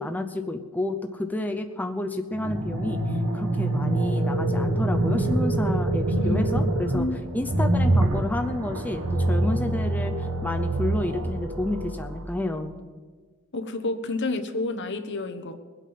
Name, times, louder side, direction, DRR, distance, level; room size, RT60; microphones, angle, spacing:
voice 1, 0.0-7.1 7.3-12.8, left 1 dB, 10° left, 5 dB, 0.6 m, -30 dB
sound 1, 2.3-12.2, right 1 dB, 80° right, 1.6 m, -25 dB
voice 2, 6.2-7.2 13.5-15.5, left 2 dB, 55° left, 8 dB, 1.2 m, -29 dB
21.5 x 8.4 x 5.7 m, 1.5 s
head